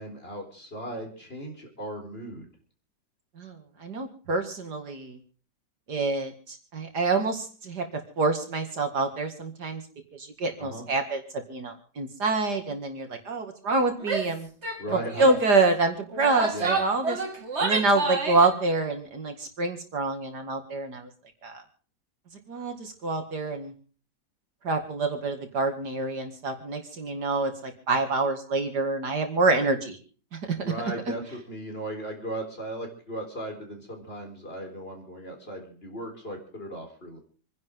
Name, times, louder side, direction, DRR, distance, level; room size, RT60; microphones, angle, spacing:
voice 1, 0.0-2.5 10.6-10.8 14.8-15.3 16.5-16.8 30.6-37.2, right 1 dB, 30° left, 2 dB, 4.2 m, -37 dB
voice 2, 3.4-5.2 5.9-7.8 8.2-9.8 10.1-14.5 14.9-17.2 17.6-21.1 21.4-21.6 22.5-23.7 24.6-30.0 30.3-30.4 31.1-31.2, right 3 dB, 60° right, 5 dB, 2.5 m, -27 dB
Female speech woman speaking / Yell, 14.0-14.3 14.6-14.8 15.1-15.4 16.1-18.5, right 3 dB, 35° right, 2.2 m, -29 dB
27.5 x 11.0 x 3.7 m, 0.40 s
omnidirectional pair, 2.0 m